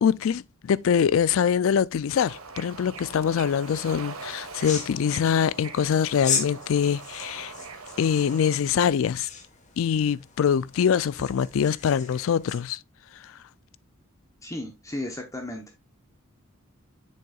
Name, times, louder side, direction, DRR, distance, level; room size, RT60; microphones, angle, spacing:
voice 1, 0.0-7.5 8.0-9.3 9.8-12.8, left 7 dB, 70° left, 0.3 m, -24 dB
Bird / Ocean, 2.2-8.6, right 4 dB, 90° right, 1.4 m, -42 dB
sound 1, 3.0-12.6, left 6 dB, 35° left, 1.3 m, -37 dB
voice 2, 14.4-15.8, left 1 dB, 15° left, 0.9 m, -35 dB
7.6 x 6.5 x 2.4 m
head